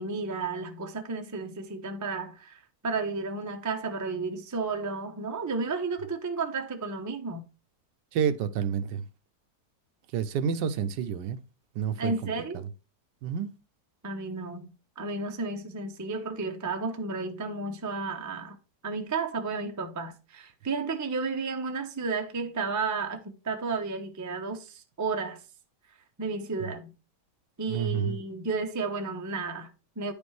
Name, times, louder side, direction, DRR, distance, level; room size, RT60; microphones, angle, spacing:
voice 1, 0.0-7.4 12.0-12.6 14.0-14.7 15.0-18.6 18.8-25.4 26.2-26.9 27.6-30.1, right 4 dB, 30° right, 0.3 m, -32 dB
voice 2, 8.1-9.0 10.1-11.4 11.8-12.3 13.2-13.5 27.7-28.2, right 7 dB, 85° right, 1.3 m, -29 dB
10.0 x 5.2 x 3.2 m
omnidirectional pair, 1.9 m